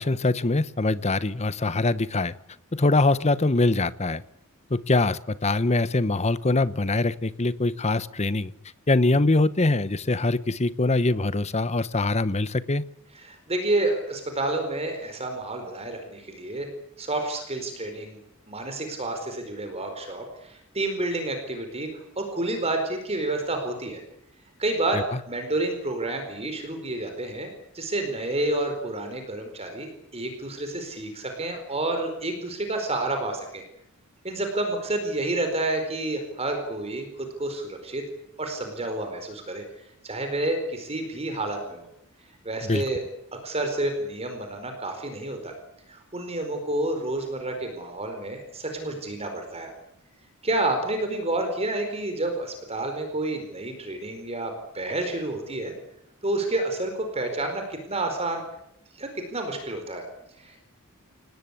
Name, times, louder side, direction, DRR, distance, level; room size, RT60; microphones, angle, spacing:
voice 1, 0.0-2.3 2.7-4.2 4.7-8.5 8.9-12.8 42.6-42.8, left 2 dB, 30° left, 16 dB, 0.9 m, -23 dB
voice 2, 13.1-16.7 17.0-18.2 18.5-24.0 24.6-33.6 34.2-38.0 38.4-39.6 40.0-41.9 42.4-43.0 43.4-45.5 45.9-49.7 50.4-55.7 56.2-58.4 58.9-60.1 60.4-60.7, right 2 dB, 30° right, 5 dB, 4.4 m, -29 dB
28.5 x 19.0 x 8.5 m, 0.79 s
head